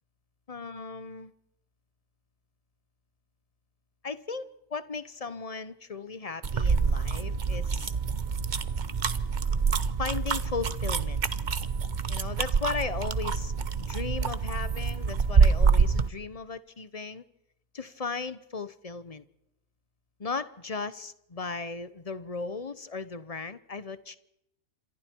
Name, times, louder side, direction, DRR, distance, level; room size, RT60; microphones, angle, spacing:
voice 1, 0.5-1.3 4.0-7.9 10.0-11.2 12.1-13.5 13.8-17.2 17.7-19.2 20.2-24.2, left 4 dB, 30° left, 0.8 m, -36 dB
sound 1, 6.4-16.1, right 5 dB, 35° right, 0.8 m, -26 dB
28.0 x 26.5 x 4.6 m
omnidirectional pair, 1.6 m